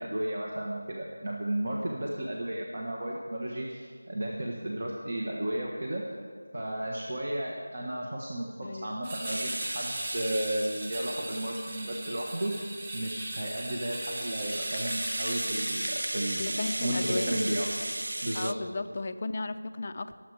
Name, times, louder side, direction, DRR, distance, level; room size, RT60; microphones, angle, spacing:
voice 1, 0.0-6.0 6.5-16.4 16.8-17.7 18.2-18.6, right 1 dB, 45° right, -2 dB, 1.4 m, -33 dB
voice 2, 8.6-9.1 16.4-17.5 18.3-20.2, left 3 dB, 30° left, 10 dB, 0.5 m, -35 dB
sound 1, 9.0-16.3, right 1 dB, 20° right, 2.2 m, -39 dB
Rattle (instrument), 9.3-12.3 12.8-18.5, right 1 dB, 70° right, 0.5 m, -36 dB
22.0 x 7.8 x 4.8 m, 2.2 s
figure-of-eight pair, 170°, 0 cm